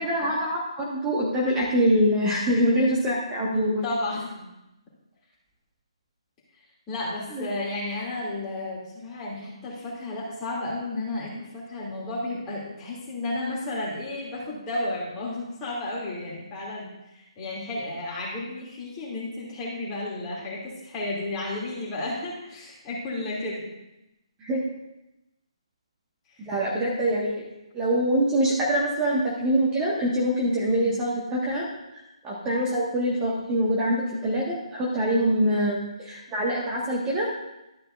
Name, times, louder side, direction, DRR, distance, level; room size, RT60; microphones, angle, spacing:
voice 1, 0.0-3.8 7.3-7.5 24.4-24.6 26.4-27.4 27.7-31.7 32.2-37.3, equal, 15° right, -5 dB, 1.7 m, -24 dB
voice 2, 3.8-4.5 6.9-23.6 26.3-26.4 30.7-30.9 32.4-32.6 35.1-35.2, left 2 dB, 20° left, -5 dB, 2.9 m, -33 dB
12.5 x 9.9 x 2.6 m, 0.93 s
figure-of-eight pair, 140°, 3 cm